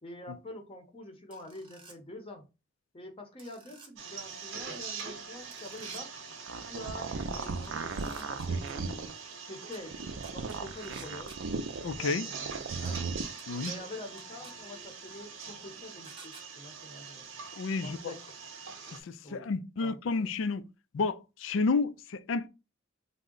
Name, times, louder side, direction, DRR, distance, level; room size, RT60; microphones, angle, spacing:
voice 1, 0.0-2.4 2.9-6.1 6.6-9.2 9.5-10.1 10.3-11.5 12.0-13.0 13.6-17.3 17.8-18.3 19.2-19.5 19.8-20.4, left 1 dB, 30° left, 0.7 m, -46 dB
sound 1, 1.3-2.0 3.4-3.9 5.5-6.0 7.6-8.7 9.7-9.8 10.2-11.4 12.9-13.0 13.4-13.7 14.2-14.5 16.0-16.4, right 4 dB, 25° right, 0.8 m, -52 dB
sound 2, 4.0-19.0, right 5 dB, 90° right, 0.9 m, -43 dB
sound 3, 6.3-9.1 9.8-12.0 12.3-13.2, right 4 dB, 70° right, 0.5 m, -36 dB
voice 2, 11.8-12.2 13.5-13.7 17.6-18.1 19.0-20.6 20.9-22.5, left 4 dB, 70° left, 0.4 m, -31 dB
3.6 x 2.1 x 3.7 m
head